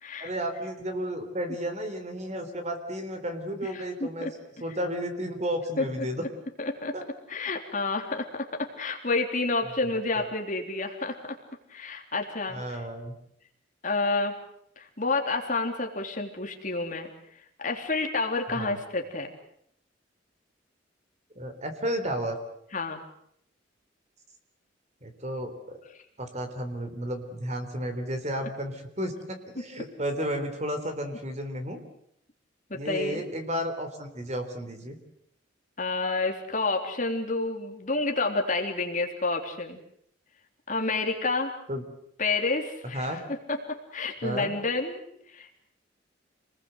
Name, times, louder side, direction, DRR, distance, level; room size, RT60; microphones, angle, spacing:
voice 1, 0.2-4.3 4.6-6.3 6.9-7.0 12.5-13.1 18.5-18.8 21.4-22.4 25.0-25.8 26.2-31.8 32.7-35.0 41.7-41.8 42.9-43.2 44.2-44.5, equal, 35° right, 7 dB, 3.8 m, -32 dB
voice 2, 3.7-4.3 5.8-6.1 6.6-7.0 7.3-11.4 11.7-12.8 13.8-14.4 14.8-17.1 17.6-19.3 22.7-23.0 32.7-33.2 35.8-39.8 40.7-41.5 42.2-45.0 45.3-45.5, left 3 dB, 40° left, 3 dB, 3.5 m, -29 dB
28.0 x 20.5 x 8.1 m, 0.72 s
head